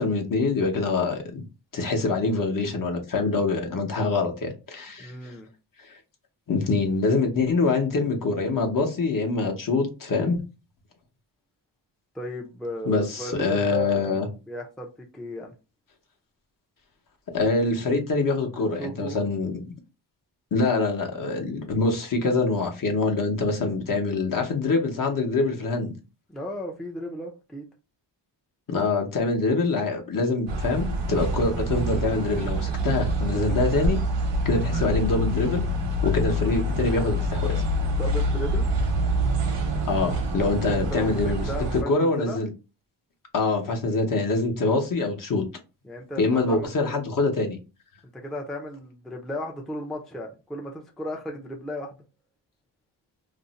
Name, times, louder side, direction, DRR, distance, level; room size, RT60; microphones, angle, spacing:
voice 1, 0.0-1.4 1.7-5.3 5.8-6.0 6.5-10.4 12.9-14.3 17.3-19.6 20.5-25.9 28.7-34.0 34.4-35.7 36.0-37.5 39.9-41.5 41.9-42.5 43.3-45.5 46.2-47.6, left 3 dB, 50° left, 0.8 m, -25 dB
voice 2, 5.0-5.5 12.1-14.1 14.5-15.5 18.8-19.2 26.3-27.7 37.9-38.7 40.6-41.2 41.5-42.4 45.8-46.9 48.1-51.9, equal, ahead, 0.4 m, -35 dB
sound 1, 30.5-41.8, right 1 dB, 80° right, 0.9 m, -26 dB
2.5 x 2.0 x 3.8 m
wide cardioid pair, 150°, 43 cm